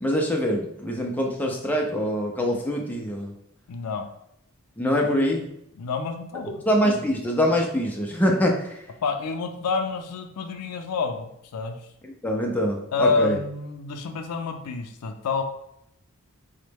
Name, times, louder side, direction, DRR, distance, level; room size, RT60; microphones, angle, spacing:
voice 1, 0.0-3.3 4.8-5.5 6.7-8.8 12.2-13.4, equal, 5° left, -1 dB, 0.3 m, -24 dB
voice 2, 3.7-4.1 5.8-6.6 9.0-11.8 12.9-15.4, left 4 dB, 90° left, 5 dB, 0.4 m, -28 dB
3.0 x 2.0 x 3.3 m, 0.76 s
head